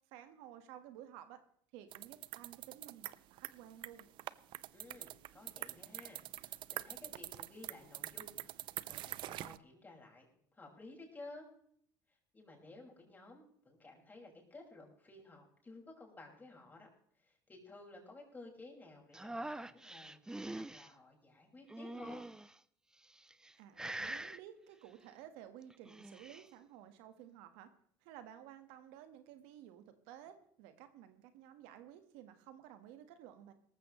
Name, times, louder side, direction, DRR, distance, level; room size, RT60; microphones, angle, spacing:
voice 1, 0.1-1.4 1.7-4.1 23.6-27.7 28.0-33.5, right 11 dB, 80° right, 9 dB, 1.5 m, -54 dB
sound 1, 1.9-9.6, right 15 dB, 60° right, 0.5 m, -45 dB
voice 2, 4.7-10.3 10.5-11.5 12.1-16.9 17.2-22.2, left 2 dB, 20° left, -1 dB, 5.4 m, -55 dB
sound 2, 19.1-20.9 21.7-22.5 23.2-23.5 23.8-24.4 25.7-26.5, right 1 dB, 5° right, 0.5 m, -44 dB
18.0 x 14.5 x 3.2 m, 0.64 s
supercardioid pair, 100°, 9 cm